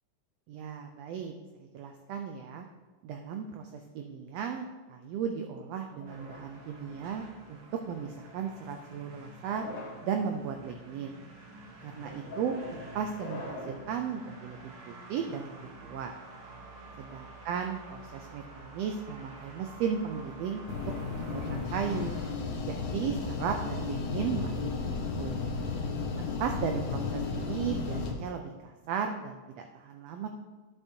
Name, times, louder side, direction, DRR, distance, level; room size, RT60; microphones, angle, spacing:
voice 1, 0.5-2.7 3.0-4.6 4.9-9.6 10.0-11.2 11.8-16.1 17.0-22.2 22.6-25.4 26.2-30.3, right 7 dB, 85° right, 5 dB, 1.4 m, -36 dB
sound 1, 6.0-7.4 8.2-8.6 9.4-10.1 10.8-11.1 12.0-13.9, left 2 dB, 55° left, 2.8 m, -44 dB
sound 2, 6.1-22.3, right 2 dB, 60° right, 1.4 m, -49 dB
sound 3, 20.7-28.1, left 4 dB, 85° left, 2.6 m, -34 dB
11.5 x 7.3 x 2.7 m, 1.3 s
omnidirectional pair, 3.5 m